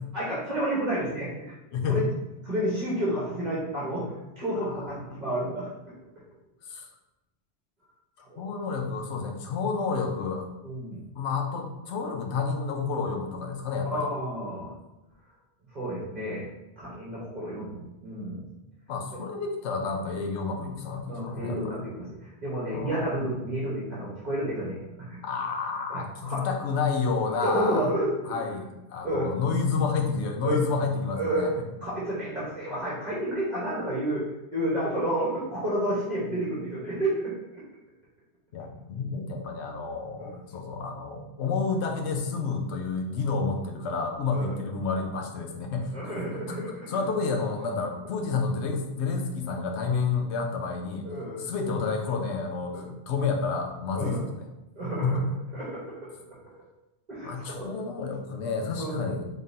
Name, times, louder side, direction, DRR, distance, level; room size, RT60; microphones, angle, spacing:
voice 1, 0.1-1.5 1.9-2.0 2.5-4.1 4.4-5.7 8.3-8.4 10.6-11.0 13.8-14.7 15.7-16.5 16.7-18.4 21.1-25.2 25.9-26.4 27.4-28.1 29.0-29.3 30.4-30.6 31.1-31.5 31.8-34.2 34.5-37.6 40.2-40.3 44.3-44.5 45.9-46.7 51.0-51.4 52.7-52.9 53.9-54.2 54.8-55.2 55.5-55.8 57.1-57.7 58.7-58.9, right 1 dB, 40° right, -8 dB, 1.2 m, -30 dB
voice 2, 1.7-2.1 4.6-4.9 6.7-6.9 8.2-10.5 11.2-14.1 18.9-21.8 22.7-23.1 25.2-27.9 28.2-31.5 38.5-45.9 46.5-46.6 46.9-51.1 51.4-54.5 55.0-55.3 57.2-59.3, left 4 dB, 75° left, 3 dB, 0.9 m, -30 dB
3.7 x 3.7 x 2.7 m, 0.97 s
omnidirectional pair, 1.2 m